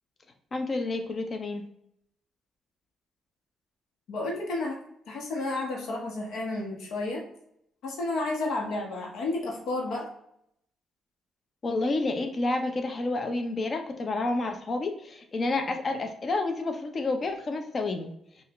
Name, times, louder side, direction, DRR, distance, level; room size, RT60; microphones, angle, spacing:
voice 1, 0.5-1.6 11.6-18.1, left 2 dB, 40° left, 5 dB, 0.7 m, -29 dB
voice 2, 4.1-4.8 5.1-7.2 7.8-10.1, left 2 dB, 80° left, -1 dB, 1.2 m, -31 dB
5.4 x 2.5 x 3.1 m, 0.74 s
cardioid pair, 90°, 0 cm